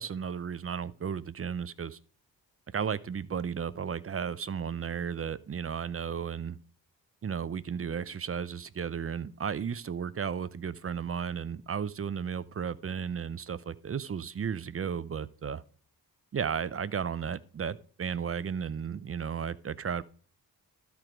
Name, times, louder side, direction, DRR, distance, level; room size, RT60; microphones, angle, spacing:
voice 1, 0.0-2.0 2.7-6.6 7.2-15.6 16.3-20.0, right 7 dB, 35° right, 0.6 m, -34 dB
13.0 x 4.6 x 5.0 m
cardioid pair, 75°, 38 cm